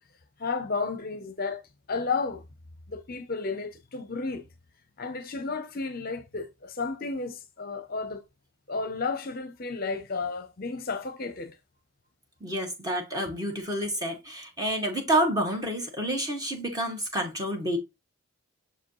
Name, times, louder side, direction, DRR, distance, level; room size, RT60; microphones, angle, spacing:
voice 1, 0.4-1.6 1.9-2.4 2.9-4.4 5.0-8.2 8.7-11.6, left 4 dB, 45° left, 0.7 m, -32 dB
voice 2, 12.4-17.8, right 1 dB, 15° right, 1.9 m, -29 dB
6.8 x 4.9 x 3.0 m
head